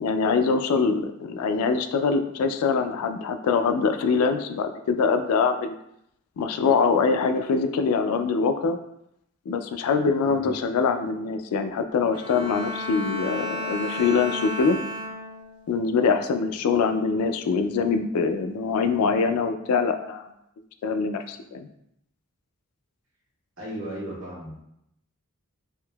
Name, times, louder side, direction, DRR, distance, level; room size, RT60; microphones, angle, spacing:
voice 1, 0.0-5.7 6.4-8.8 9.5-14.8 15.7-20.3 20.8-21.7, left 5 dB, 85° left, 9 dB, 0.3 m, -24 dB
Bowed string instrument, 12.1-15.7 16.2-16.5, left 1 dB, 25° right, 0.4 m, -33 dB
voice 2, 23.6-24.6, right 1 dB, 65° right, -7 dB, 1.5 m, -36 dB
3.6 x 2.6 x 2.2 m, 0.78 s
head